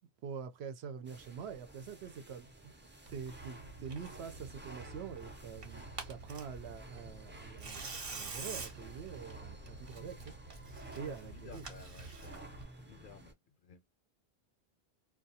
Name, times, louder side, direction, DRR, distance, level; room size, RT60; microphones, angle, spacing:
voice 1, 0.2-2.7 3.1-10.3 10.9-11.6, right 6 dB, 90° right, 0.9 m, -45 dB
sound 1, 1.0-13.3, right 1 dB, 15° right, 0.4 m, -54 dB
Tearing, 3.1-12.7, right 3 dB, 55° right, 0.9 m, -47 dB
voice 2, 11.0-12.4 12.8-13.9, left 5 dB, 60° left, 0.6 m, -55 dB
2.4 x 2.2 x 2.7 m
omnidirectional pair, 1.1 m